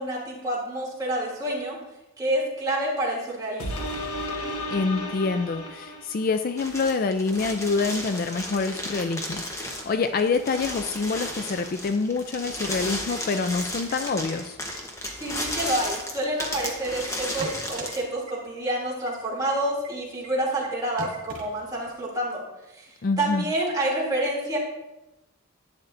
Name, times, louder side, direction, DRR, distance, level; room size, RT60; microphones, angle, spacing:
voice 1, 0.0-1.8 2.2-3.9 15.2-22.4 22.7-24.6, right 1 dB, 15° right, -5 dB, 2.8 m, -28 dB
sound 1, 3.6-6.5 7.0-7.1, left 1 dB, 80° left, 1.6 m, -33 dB
voice 2, 4.7-14.6 23.0-23.5, left 4 dB, 40° left, 8 dB, 0.3 m, -26 dB
sound 2, 6.6-18.0, left 1 dB, 15° left, 1.0 m, -34 dB
sound 3, 12.5-13.5 13.9-14.0 14.3-14.7 15.1-16.7 17.0-17.9 18.3-18.4 18.7-18.8 19.1-19.2 19.5-19.6 19.8-19.9 20.2-20.3 20.6-20.7 21.0-22.0, right 2 dB, 70° right, 2.2 m, -40 dB
11.5 x 9.0 x 2.6 m, 0.96 s
head